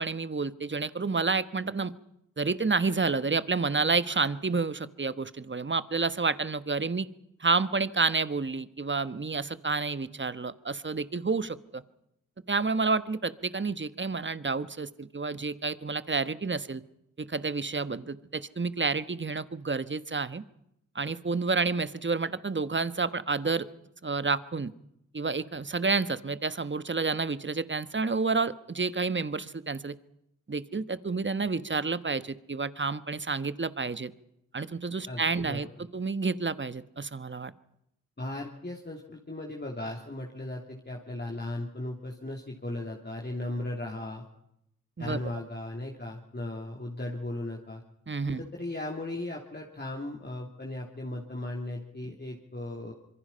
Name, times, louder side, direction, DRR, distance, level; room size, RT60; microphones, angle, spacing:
voice 1, 0.0-1.9 2.4-7.1 7.4-11.8 12.5-16.8 17.2-20.4 20.9-23.7 24.0-24.7 25.1-29.9 30.5-34.1 34.5-35.7 35.9-37.5 45.0-45.2 48.1-48.4, right 4 dB, 35° right, 14 dB, 1.3 m, -29 dB
voice 2, 35.1-35.6 38.2-44.2 45.0-47.8 48.3-52.9, left 1 dB, 30° left, 0 dB, 3.2 m, -37 dB
26.0 x 23.0 x 5.7 m, 0.79 s
cardioid pair, 40°, 32 cm